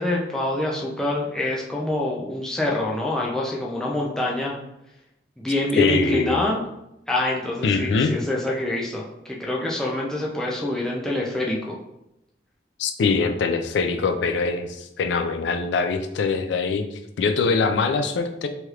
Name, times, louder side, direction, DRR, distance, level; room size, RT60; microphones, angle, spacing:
voice 1, 0.0-4.6 5.4-6.7 7.1-11.8, left 1 dB, 5° left, -3 dB, 0.4 m, -26 dB
voice 2, 5.8-6.4 7.6-8.1 12.8-18.5, left 4 dB, 85° left, 7 dB, 0.3 m, -23 dB
3.2 x 2.8 x 2.3 m, 0.86 s
head